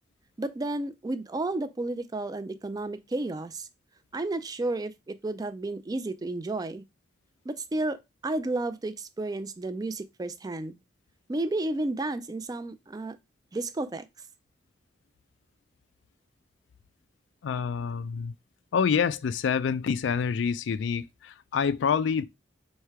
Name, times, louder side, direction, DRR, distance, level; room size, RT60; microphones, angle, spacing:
voice 1, 0.4-3.7 4.1-6.8 7.5-10.8 11.3-13.2 13.5-14.1, right 2 dB, 20° right, 0.4 m, -32 dB
voice 2, 17.4-18.3 18.7-22.2, left 6 dB, 75° left, 0.3 m, -27 dB
3.2 x 3.2 x 4.7 m
head